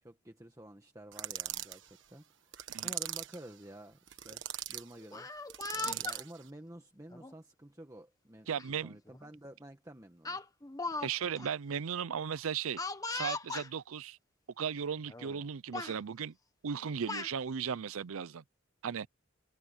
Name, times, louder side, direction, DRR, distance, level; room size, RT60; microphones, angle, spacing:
voice 1, 0.0-4.4 4.7-5.3 5.7-8.5 8.8-10.4, right 1 dB, 15° right, 1.4 m, -51 dB
sound 1, 1.1-1.8 2.5-3.4 4.1-4.8 5.5-6.3, right 12 dB, 60° right, 1.5 m, -39 dB
Speech, 5.0-6.2 7.1-7.3 8.6-8.7 9.1-9.3 10.3-11.1 11.4-11.5 12.8-13.7 14.6-14.7 15.1-15.4 15.7-16.0 16.7-17.3, left 3 dB, 15° left, 1.3 m, -38 dB
voice 2, 8.5-9.0 11.0-12.8 13.1-14.2 14.6-16.3 16.6-18.4 18.8-19.1, right 7 dB, 80° right, 0.5 m, -36 dB
head